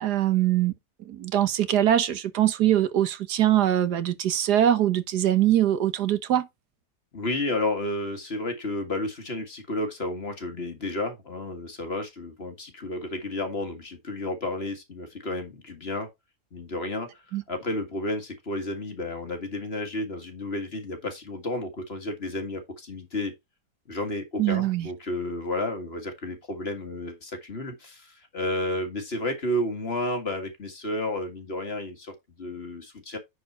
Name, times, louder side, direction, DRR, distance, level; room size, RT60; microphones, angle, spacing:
voice 1, 0.0-6.5 17.3-17.4 24.4-24.9, right 11 dB, 80° right, 1.6 m, -23 dB
voice 2, 7.1-16.1 16.5-23.3 23.9-33.2, left 1 dB, 40° left, 2.0 m, -32 dB
10.0 x 4.4 x 4.2 m
omnidirectional pair, 1.7 m